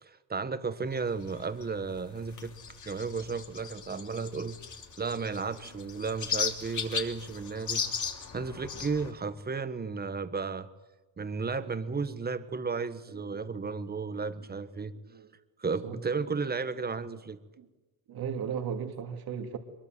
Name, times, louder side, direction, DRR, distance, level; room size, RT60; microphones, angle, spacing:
voice 1, 0.0-2.5 2.8-4.6 5.0-7.8 8.3-10.7 11.2-14.9 15.6-17.4, right 4 dB, 25° right, 12 dB, 1.5 m, -33 dB
sound 1, 0.9-9.1, left 6 dB, 45° left, 3.0 m, -37 dB
voice 2, 13.3-13.6 15.1-15.3 15.8-16.4 17.6-17.7 18.1-19.6, right 7 dB, 60° right, 5 dB, 2.7 m, -37 dB
23.0 x 22.0 x 9.1 m, 1.1 s
cardioid pair, 115°, 40 cm